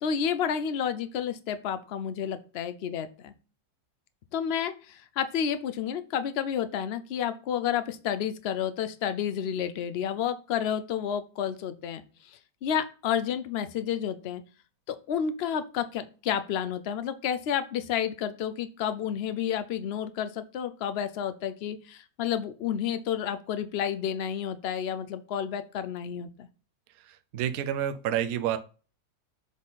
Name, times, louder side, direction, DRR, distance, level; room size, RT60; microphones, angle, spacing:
voice 1, 0.0-3.3 4.3-12.0 12.3-14.4 14.9-26.5, left 8 dB, 70° left, 11 dB, 0.6 m, -30 dB
voice 2, 27.1-28.6, right 10 dB, 65° right, 9 dB, 1.0 m, -29 dB
7.3 x 3.7 x 4.0 m, 0.35 s
omnidirectional pair, 1.8 m